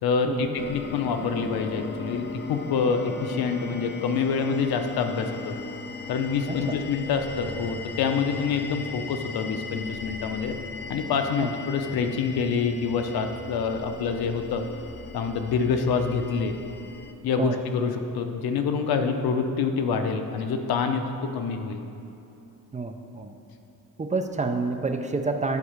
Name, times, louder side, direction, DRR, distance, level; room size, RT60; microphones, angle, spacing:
voice 1, 0.0-5.5 6.1-10.5 10.9-14.6 15.1-16.5 17.2-21.8, left 5 dB, 90° left, 6 dB, 0.8 m, -26 dB
sound 1, 0.6-17.1, left 4 dB, 30° left, 0.5 m, -38 dB
voice 2, 6.5-6.8 11.4-11.6 17.4-17.6 22.7-23.4 24.0-25.6, right 3 dB, 20° right, 6 dB, 0.5 m, -28 dB
11.0 x 4.7 x 6.6 m, 2.8 s
cardioid pair, 135°, 36 cm